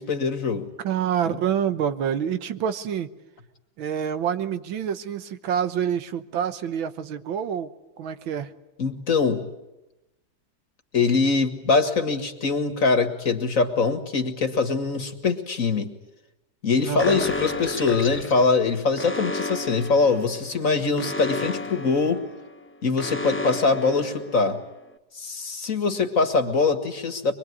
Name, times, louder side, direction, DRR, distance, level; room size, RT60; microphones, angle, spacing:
voice 1, 0.0-0.7 1.3-1.4 8.8-9.4 10.9-15.9 16.6-22.2 22.8-24.6 25.1-27.3, left 4 dB, 45° left, 7 dB, 2.1 m, -23 dB
voice 2, 0.8-3.1 3.8-7.7 8.0-8.5 16.8-17.3, right 8 dB, 80° right, 11 dB, 1.9 m, -27 dB
Alarm, 17.0-24.7, left 1 dB, 15° left, 0.4 m, -33 dB
24.0 x 22.5 x 9.7 m, 0.97 s
omnidirectional pair, 2.1 m